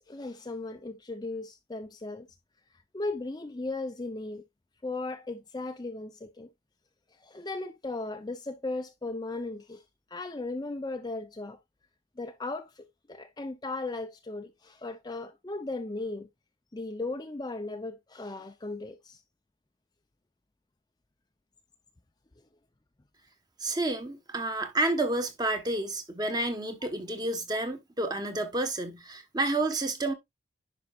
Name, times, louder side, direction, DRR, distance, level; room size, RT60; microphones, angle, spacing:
voice 1, 0.1-2.3 2.9-4.4 4.8-6.5 7.2-9.8 10.1-11.6 12.2-16.3 16.7-19.2, left 2 dB, 20° left, 0.5 m, -36 dB
voice 2, 23.6-30.1, right 2 dB, 20° right, 1.2 m, -30 dB
10.5 x 5.4 x 2.4 m
head